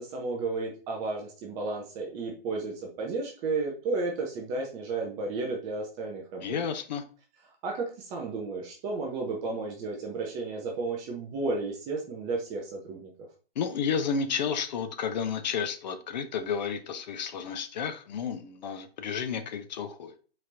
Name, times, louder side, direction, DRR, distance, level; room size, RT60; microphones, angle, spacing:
voice 1, 0.0-6.6 7.6-13.1, right 3 dB, 15° right, 0 dB, 0.4 m, -33 dB
voice 2, 6.4-7.0 13.6-20.1, left 6 dB, 45° left, 8 dB, 0.7 m, -31 dB
4.2 x 4.1 x 2.5 m, 0.37 s
figure-of-eight pair, 120°, 30 cm